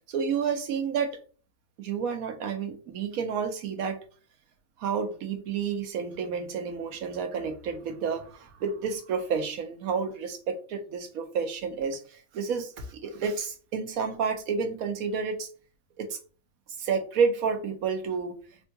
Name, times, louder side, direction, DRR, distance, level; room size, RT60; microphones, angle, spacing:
voice 1, 0.1-1.2 1.8-4.0 4.8-15.5 16.0-16.2 16.8-18.6, right 6 dB, 80° right, 1.1 m, -30 dB
3.6 x 2.7 x 2.2 m
omnidirectional pair, 1.5 m